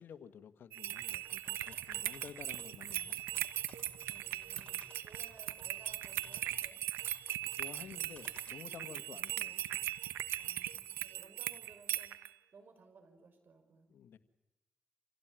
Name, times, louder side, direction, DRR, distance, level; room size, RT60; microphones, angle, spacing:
voice 1, 0.0-3.5 7.5-10.0 13.9-14.2, left 8 dB, 75° left, 11 dB, 1.7 m, -52 dB
sound 1, 0.7-12.3, right 12 dB, 90° right, 1.2 m, -39 dB
sound 2, 1.2-8.9, left 3 dB, 30° left, 5.2 m, -60 dB
voice 2, 4.0-6.8 10.4-12.3 12.5-13.9, right 4 dB, 60° right, 7 dB, 6.5 m, -60 dB
28.5 x 16.5 x 9.2 m, 0.98 s
supercardioid pair, 55°, 4 cm